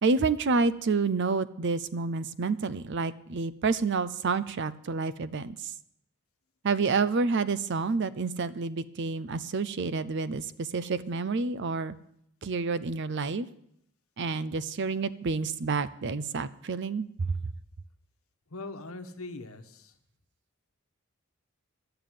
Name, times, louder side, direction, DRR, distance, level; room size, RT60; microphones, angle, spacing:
voice 1, 0.0-5.7 6.6-12.0 12.4-13.5 14.2-17.4, right 4 dB, 55° right, 16 dB, 0.5 m, -29 dB
voice 2, 18.5-19.9, left 2 dB, 85° left, 8 dB, 1.2 m, -41 dB
11.0 x 6.8 x 9.1 m, 0.74 s
head